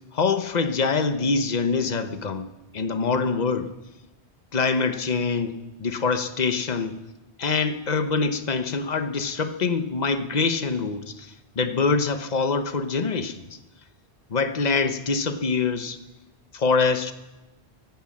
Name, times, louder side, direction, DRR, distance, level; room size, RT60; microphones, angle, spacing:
voice 1, 0.1-2.5 2.7-3.7 4.5-6.9 7.4-13.5 14.3-16.0 16.5-17.1, left 4 dB, 40° left, 9 dB, 1.1 m, -24 dB
16.0 x 11.5 x 7.4 m, 1.0 s
omnidirectional pair, 1.1 m